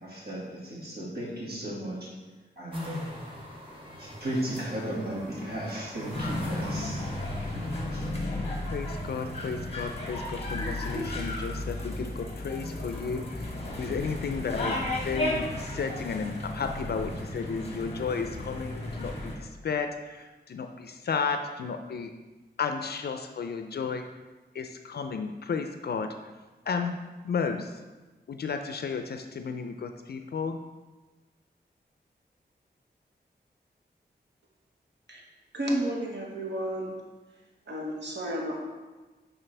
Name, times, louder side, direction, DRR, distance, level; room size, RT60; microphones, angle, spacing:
voice 1, 0.0-2.1 2.6-3.1 4.0-7.0 7.4-7.5 7.9-8.3, right 1 dB, 65° right, -5 dB, 2.0 m, -35 dB
sound 1, 2.7-8.1, equal, 30° right, 1.3 m, -40 dB
sound 2, 6.1-19.4, left 1 dB, 35° left, 1.2 m, -34 dB
voice 2, 8.7-22.1 22.6-24.0 24.5-26.3 26.7-27.0 27.2-27.8 28.3-30.6, left 5 dB, 65° left, 6 dB, 0.4 m, -33 dB
voice 3, 35.5-37.0 37.7-38.6, right 1 dB, 85° right, -2 dB, 1.3 m, -31 dB
10.0 x 4.0 x 3.3 m, 1.2 s
wide cardioid pair, 140°, 18 cm